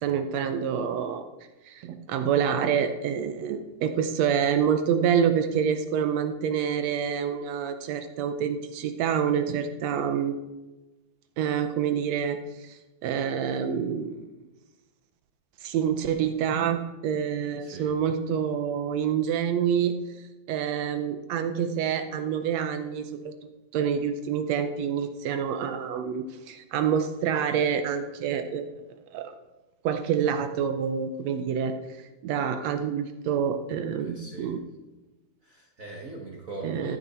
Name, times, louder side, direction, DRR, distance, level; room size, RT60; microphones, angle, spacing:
voice 1, 0.0-1.3 1.6-10.3 11.4-14.3 15.6-20.0 20.5-23.3 23.7-28.6 29.1-29.3 29.8-34.6 36.6-37.0, right 8 dB, 75° right, 8 dB, 1.7 m, -27 dB
voice 2, 17.6-18.0 34.0-34.6 35.4-37.0, right 3 dB, 50° right, -1 dB, 0.9 m, -41 dB
14.0 x 8.9 x 4.3 m, 1.1 s
omnidirectional pair, 3.6 m